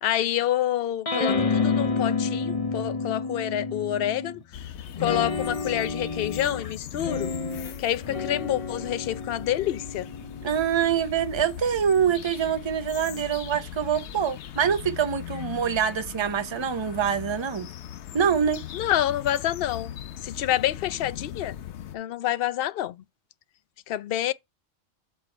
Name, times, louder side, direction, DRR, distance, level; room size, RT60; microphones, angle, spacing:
voice 1, 0.0-4.4 5.0-7.3 7.8-10.1 18.7-21.6 21.9-23.0 23.9-24.3, left 12 dB, 65° left, 0.8 m, -27 dB
sound 1, 1.1-4.4 5.0-11.7, left 4 dB, 35° left, 1.0 m, -30 dB
sound 2, 4.5-22.0, left 10 dB, 85° left, 1.0 m, -40 dB
voice 2, 10.4-17.7 18.1-18.6, right 8 dB, 30° right, 0.7 m, -25 dB
8.1 x 4.5 x 4.4 m
omnidirectional pair, 1.1 m